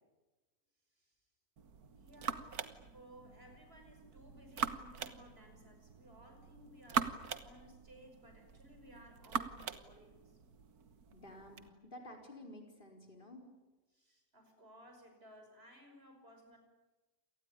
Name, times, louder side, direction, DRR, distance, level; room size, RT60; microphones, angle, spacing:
sound 1, 1.6-11.7, right 6 dB, 85° right, 1.8 m, -43 dB
voice 1, 2.0-10.3 13.9-16.6, equal, 40° right, 5 dB, 6.1 m, -59 dB
voice 2, 11.1-13.4, left 1 dB, 35° left, 2 dB, 4.7 m, -52 dB
28.5 x 19.0 x 9.9 m, 1.1 s
omnidirectional pair, 1.6 m